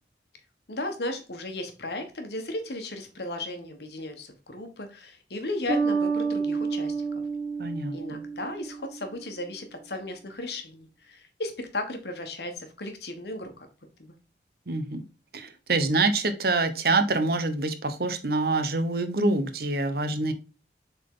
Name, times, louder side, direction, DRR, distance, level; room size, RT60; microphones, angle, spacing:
voice 1, 0.7-7.1 7.9-13.7 14.0-14.1, left 2 dB, 65° left, 6 dB, 1.3 m, -35 dB
Bass guitar, 5.7-9.2, right 5 dB, 80° right, 1.4 m, -29 dB
voice 2, 7.6-8.2 14.7-15.0 15.3-20.3, right 3 dB, 60° right, 9 dB, 0.9 m, -26 dB
7.0 x 4.0 x 3.8 m, 0.32 s
head